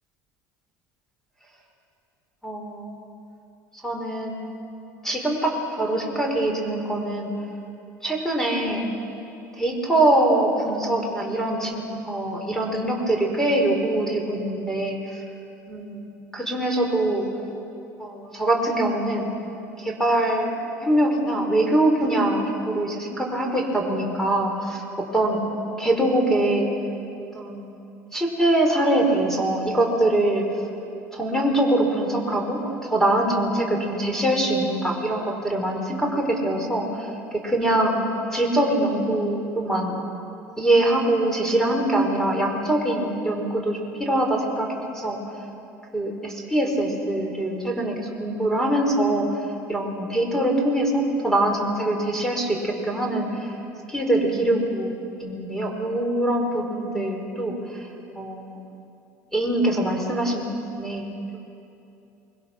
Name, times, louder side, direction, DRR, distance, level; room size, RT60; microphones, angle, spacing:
voice 1, 2.4-3.0 3.8-4.3 5.0-7.3 8.0-8.8 9.6-15.2 15.7-16.0 16.3-17.3 18.0-19.3 19.8-20.5 20.8-25.4 25.8-26.7 27.3-27.7 28.1-30.4 31.1-37.1 37.4-37.9 38.3-40.0 40.6-45.2 45.9-49.3 49.7-53.6 53.9-54.9 55.2-57.9 58.2-58.6 59.3-61.4, right 1 dB, 5° left, 1 dB, 5.3 m, -23 dB
25.0 x 22.0 x 6.4 m, 2.8 s
hypercardioid pair, 70°, 9 cm